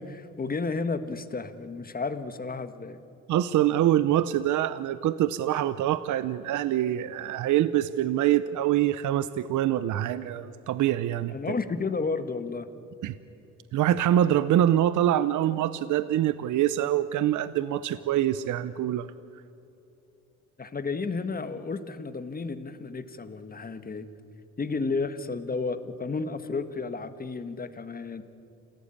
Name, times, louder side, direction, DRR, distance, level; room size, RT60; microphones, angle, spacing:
voice 1, 0.0-3.0 11.3-12.7 20.6-24.1 24.6-28.2, left 4 dB, 30° left, 11 dB, 1.6 m, -32 dB
voice 2, 3.3-11.3 13.0-13.1 13.7-19.1, right 12 dB, 80° right, 14 dB, 0.8 m, -25 dB
27.5 x 17.5 x 8.7 m, 2.8 s
cardioid pair, 90°, 30 cm